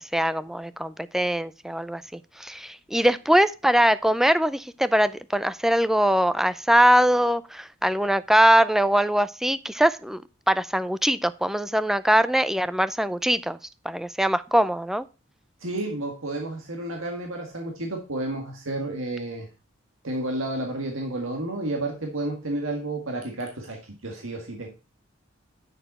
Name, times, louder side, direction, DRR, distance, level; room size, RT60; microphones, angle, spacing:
voice 1, 0.1-10.2 10.5-13.6 13.8-15.0, equal, ahead, 15 dB, 0.3 m, -22 dB
voice 2, 15.6-19.5 20.0-24.7, right 2 dB, 80° right, 2 dB, 1.8 m, -31 dB
9.0 x 6.6 x 4.1 m, 0.32 s
head